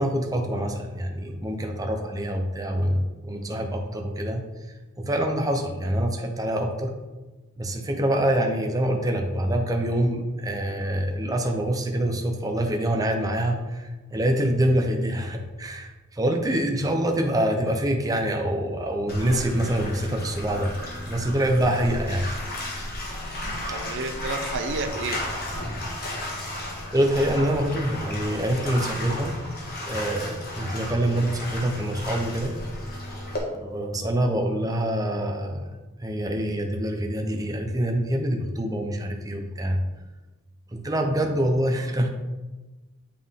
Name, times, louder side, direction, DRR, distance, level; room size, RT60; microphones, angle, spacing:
voice 1, 0.0-4.4 5.0-6.9 7.6-20.7 21.1-22.3 26.9-29.3 29.8-32.6 33.6-35.6 36.0-39.8 40.7-42.1, right 1 dB, 15° right, 3 dB, 0.6 m, -25 dB
Bathtub (filling or washing), 19.1-33.4, left 1 dB, 45° left, 1.3 m, -33 dB
voice 2, 23.7-25.2, right 3 dB, 55° right, 7 dB, 0.5 m, -30 dB
8.4 x 3.8 x 3.6 m, 1.2 s
head